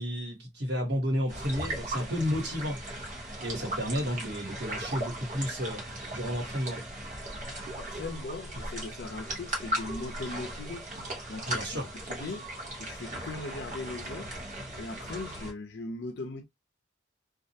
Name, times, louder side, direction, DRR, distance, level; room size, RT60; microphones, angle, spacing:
voice 1, 0.0-2.8 3.4-5.8 6.1-6.8 11.5-11.9, equal, 65° right, 1.2 m, -32 dB
sound 1, 1.3-15.5, right 1 dB, 40° right, 0.9 m, -37 dB
voice 2, 7.8-10.9 11.3-12.5 12.8-14.4 14.8-16.4, left 3 dB, 70° left, 0.5 m, -39 dB
2.3 x 2.1 x 2.7 m
head